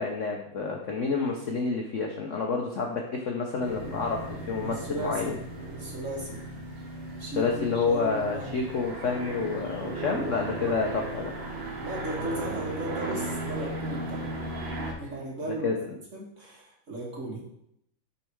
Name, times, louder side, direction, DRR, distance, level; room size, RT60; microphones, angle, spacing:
voice 1, 0.0-5.4 7.4-11.3 15.5-15.8, left 4 dB, 60° left, 1 dB, 0.8 m, -29 dB
sound 1, 3.6-14.9, right 2 dB, 85° right, 2.1 m, -36 dB
voice 2, 4.6-5.3 5.7-6.5 7.2-8.7 10.6-10.7 11.8-14.4 15.0-15.7 16.1-17.4, right 1 dB, 40° right, -3 dB, 1.9 m, -36 dB
9.2 x 4.2 x 4.6 m, 0.76 s
omnidirectional pair, 2.2 m